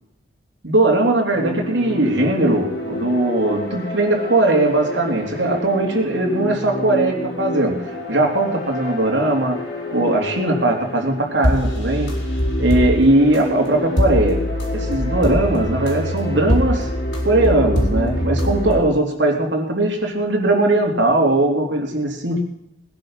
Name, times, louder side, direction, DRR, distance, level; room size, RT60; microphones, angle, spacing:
voice 1, 0.6-9.6 9.9-12.1 12.6-16.9 17.2-22.4, right 2 dB, 75° right, 1 dB, 3.5 m, -19 dB
sound 1, 1.3-18.8, left 1 dB, 80° left, 5.2 m, -25 dB
20.0 x 10.5 x 5.8 m, 0.81 s
head